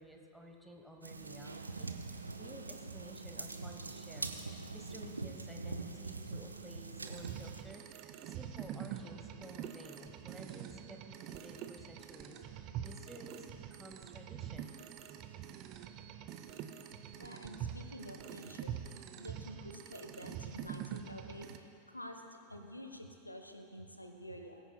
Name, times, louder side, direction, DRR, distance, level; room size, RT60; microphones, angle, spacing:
voice 1, 0.0-14.8, right 1 dB, ahead, 2 dB, 1.2 m, -53 dB
sound 1, 1.0-7.6, right 3 dB, 80° right, 0.6 m, -43 dB
sound 2, 7.0-21.6, right 9 dB, 40° right, 0.7 m, -45 dB
voice 2, 17.2-18.8 19.2-21.5 21.9-22.2 22.5-24.6, equal, 85° left, 5 dB, 0.8 m, -48 dB
21.5 x 9.8 x 2.3 m, 2.7 s
figure-of-eight pair, 90°, 0 cm